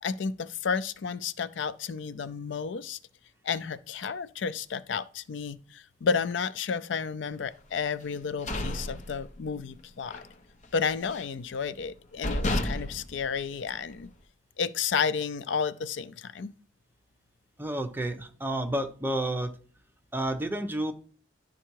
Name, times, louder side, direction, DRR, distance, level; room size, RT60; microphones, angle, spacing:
voice 1, 0.0-3.0 3.4-10.2 10.7-14.1 14.6-16.5, left 6 dB, 70° left, 0.4 m, -32 dB
sound 1, 8.1-9.7 10.0-10.3 10.6-11.4 11.9-12.0 12.2-14.1, left 1 dB, 40° left, 0.9 m, -32 dB
voice 2, 17.6-19.5 20.1-20.9, right 1 dB, 10° right, 0.8 m, -30 dB
11.0 x 3.7 x 4.6 m
head